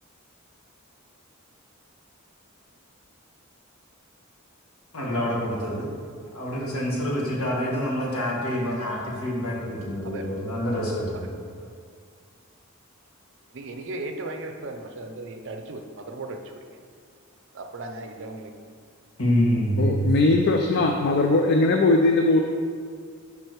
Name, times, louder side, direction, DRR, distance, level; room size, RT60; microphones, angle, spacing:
voice 1, 4.9-5.9 6.3-11.3 19.2-20.1, equal, 80° left, -3 dB, 1.4 m, -26 dB
voice 2, 13.5-16.6 17.5-18.5, right 2 dB, 60° right, 5 dB, 0.6 m, -36 dB
voice 3, 19.8-22.4, left 2 dB, 50° left, 3 dB, 0.4 m, -20 dB
5.3 x 4.7 x 4.6 m, 2.1 s
head